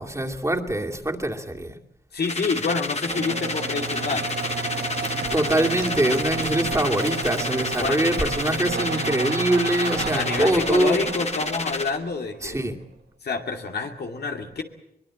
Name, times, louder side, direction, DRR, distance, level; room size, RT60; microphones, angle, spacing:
voice 1, 0.0-1.7 5.3-11.1 12.4-12.7, right 1 dB, 20° right, 2 dB, 2.5 m, -24 dB
voice 2, 2.1-4.3 7.8-8.2 10.1-12.6 13.2-14.6, left 4 dB, 85° left, 3 dB, 2.5 m, -28 dB
sound 1, 2.2-12.0, left 3 dB, 40° left, 2.3 m, -30 dB
sound 2, 3.0-12.6, right 4 dB, 90° right, 1.9 m, -32 dB
23.5 x 20.5 x 7.6 m, 0.78 s
wide cardioid pair, 70°, 16 cm